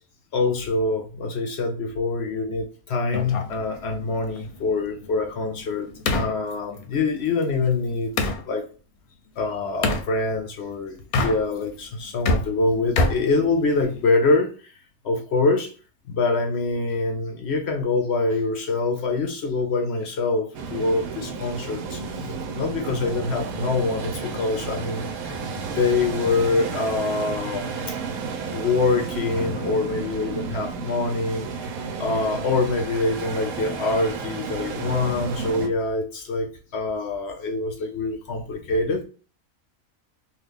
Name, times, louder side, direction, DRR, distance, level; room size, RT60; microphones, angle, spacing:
voice 1, 0.3-5.9 6.1-8.7 9.4-14.7 15.0-15.7 16.1-27.9 28.5-31.7 32.0-39.0, left 3 dB, 65° left, 5 dB, 0.7 m, -25 dB
sound 1, 3.1-8.4 9.8-10.1 11.0-11.8 12.1-14.0, left 2 dB, 85° left, 1.1 m, -27 dB
sound 2, 20.5-35.7, right 4 dB, 80° right, 1.1 m, -32 dB
2.9 x 2.4 x 3.4 m, 0.39 s
omnidirectional pair, 1.5 m